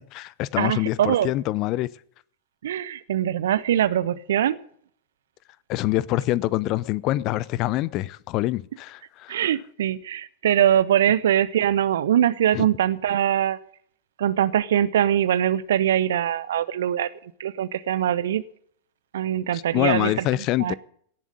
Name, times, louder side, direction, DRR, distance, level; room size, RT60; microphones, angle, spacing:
voice 1, 0.0-1.9 5.7-9.4 12.5-12.7 19.5-20.7, left 16 dB, 40° left, 0.6 m, -25 dB
voice 2, 0.6-1.3 2.6-4.6 9.3-13.6 14.2-17.1 17.4-18.4 19.1-20.3 20.6-20.7, right 10 dB, 60° right, 0.8 m, -22 dB
18.0 x 7.3 x 9.4 m
figure-of-eight pair, 90°, 0 cm